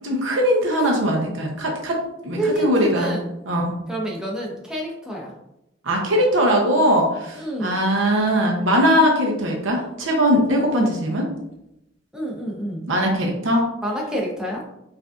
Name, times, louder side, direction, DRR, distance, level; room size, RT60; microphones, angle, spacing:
voice 1, 0.0-3.1 3.5-3.7 5.8-11.3 12.9-13.7, equal, 85° right, 0 dB, 0.7 m, -20 dB
voice 2, 2.4-3.3 3.9-5.3 7.4-7.8 10.7-10.9 12.1-12.9 13.8-14.6, equal, 5° right, -2 dB, 0.7 m, -28 dB
4.9 x 2.6 x 2.4 m, 0.84 s
head